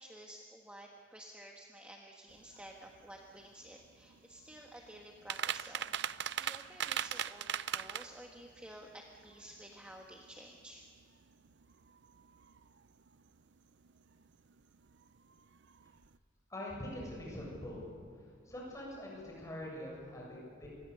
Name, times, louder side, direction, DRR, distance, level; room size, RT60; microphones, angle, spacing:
voice 1, 0.0-10.9, right 1 dB, 5° right, 0 dB, 1.4 m, -53 dB
sound 1, 2.3-16.2, right 9 dB, 60° right, 0.5 m, -43 dB
voice 2, 16.5-17.8 18.5-20.7, left 1 dB, 15° left, -3 dB, 7.6 m, -44 dB
27.0 x 21.5 x 6.8 m, 2.3 s
head